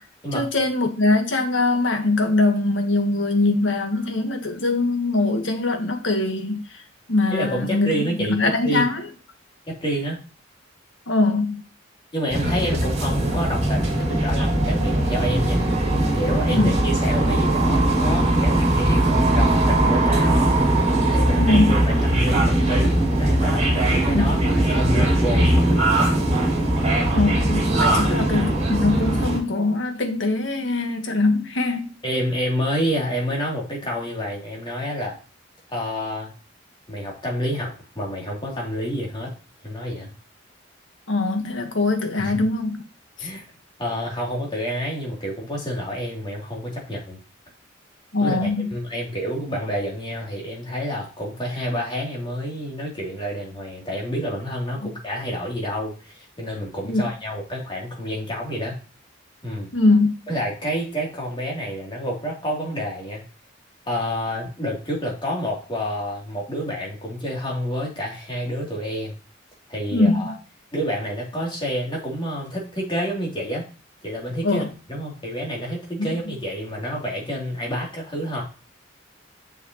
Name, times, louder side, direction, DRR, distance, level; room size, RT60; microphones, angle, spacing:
voice 1, 0.3-6.6 7.1-9.0 11.1-11.6 16.5-16.7 21.4-21.7 24.1-24.4 27.1-31.9 41.1-42.8 43.2-43.3 48.1-48.7 56.8-57.0 59.7-60.1 69.9-70.3 74.4-74.7 76.0-76.1, left 2 dB, 75° left, 1.6 m, -22 dB
voice 2, 7.3-8.8 9.7-10.2 12.1-15.6 16.1-20.6 21.0-24.4 24.7-26.2 27.8-28.1 32.0-35.2 35.7-36.3 36.9-39.3 39.6-40.1 42.2-42.4 43.2-43.5 43.8-47.2 48.2-58.8 59.4-59.7 60.3-63.2 63.9-69.1 69.7-70.3 70.7-73.7 74.0-78.4, equal, 25° left, 3.3 m, -28 dB
sound 1, 12.3-29.4, right 1 dB, 35° right, 3.6 m, -20 dB
7.1 x 6.9 x 3.1 m
head